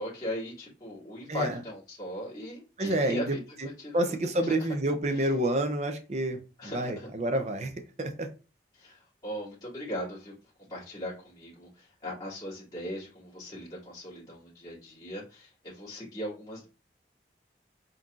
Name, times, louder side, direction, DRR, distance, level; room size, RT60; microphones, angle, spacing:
voice 1, 0.0-3.4 3.8-4.1 5.1-5.3 6.6-7.1 8.7-10.3 10.7-16.7, equal, 20° left, 2.4 m, -39 dB
voice 2, 1.3-1.6 2.8-3.7 3.9-6.4 6.7-7.7 8.0-8.3, right 1 dB, 40° right, 0.6 m, -28 dB
4.2 x 3.8 x 2.4 m
head